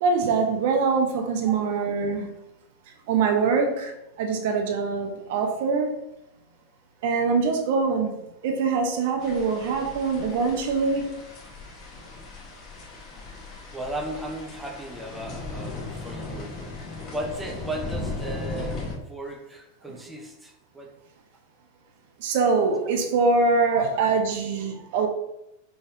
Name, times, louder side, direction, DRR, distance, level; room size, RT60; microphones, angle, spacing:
voice 1, 0.0-2.3 3.1-6.0 7.0-11.2 22.2-25.1, right 4 dB, 50° right, 4 dB, 0.7 m, -24 dB
sound 1, 9.2-19.0, left 3 dB, 35° left, 1.0 m, -37 dB
voice 2, 13.7-16.7 17.1-20.9 23.6-23.9 24.7-24.9, right 1 dB, 5° right, 2 dB, 0.6 m, -36 dB
5.3 x 3.4 x 2.7 m, 0.85 s
figure-of-eight pair, 90°, 0 cm